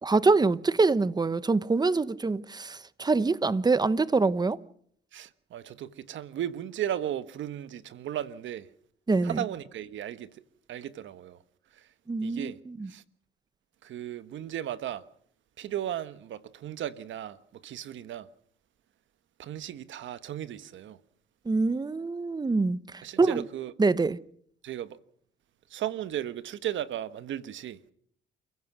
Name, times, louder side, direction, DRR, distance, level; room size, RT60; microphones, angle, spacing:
voice 1, 0.0-4.6 9.1-9.4 12.1-12.9 21.5-22.8 23.2-23.4 23.8-24.2, right 3 dB, 20° right, 1.1 m, -25 dB
voice 2, 5.1-8.7 9.2-10.4 10.7-11.4 11.7-11.9 12.2-12.6 12.9-13.0 13.8-15.0 15.6-18.3 19.4-21.0 23.0-23.7 24.6-25.0 25.7-27.8, right 11 dB, 75° right, 1.4 m, -36 dB
29.0 x 16.0 x 6.2 m
cardioid pair, 90°, 20 cm